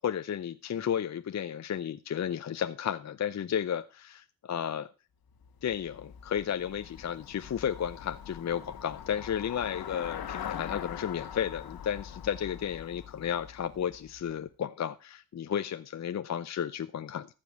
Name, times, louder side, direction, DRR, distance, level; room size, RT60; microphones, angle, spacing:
voice 1, 0.0-4.9 5.6-17.3, left 9 dB, 50° left, 0.7 m, -33 dB
Traffic noise roadway noise / Bicycle, 5.3-14.5, left 9 dB, 80° left, 1.5 m, -43 dB
14.5 x 5.4 x 6.5 m
cardioid pair, 90°, 36 cm